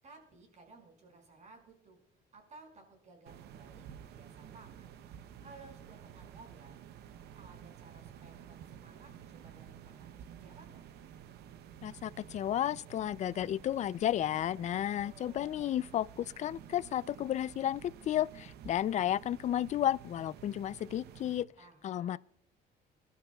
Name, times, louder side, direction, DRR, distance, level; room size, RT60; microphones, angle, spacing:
voice 1, 0.0-2.0 2.3-4.9 5.4-6.8 7.3-10.8 14.9-15.5 21.6-22.2, right 3 dB, 45° right, 5.6 m, -57 dB
sound 1, 3.3-21.4, right 9 dB, 75° right, 0.7 m, -52 dB
voice 2, 11.8-21.5 21.8-22.2, left 11 dB, 45° left, 0.4 m, -32 dB
24.5 x 12.5 x 2.3 m
cardioid pair, 110°, 17 cm